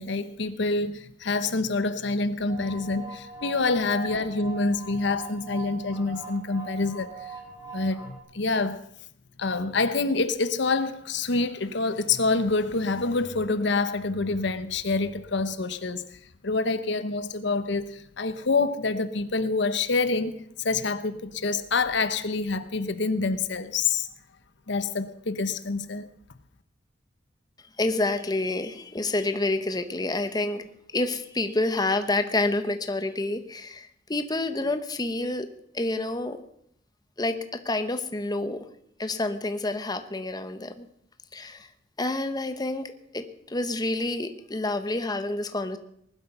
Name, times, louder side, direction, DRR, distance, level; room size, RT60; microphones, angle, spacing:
voice 1, 0.0-7.3 7.7-8.8 9.4-16.0 16.4-24.1 24.7-26.1, left 3 dB, 65° left, 1.0 m, -27 dB
sound 1, 2.5-8.2, right 5 dB, 20° right, 4.4 m, -42 dB
voice 2, 27.8-30.7 30.9-35.5 35.7-36.4 37.2-38.7 39.0-40.9 41.3-41.7 42.0-45.8, left 2 dB, 20° left, 1.0 m, -28 dB
19.5 x 12.0 x 5.5 m
head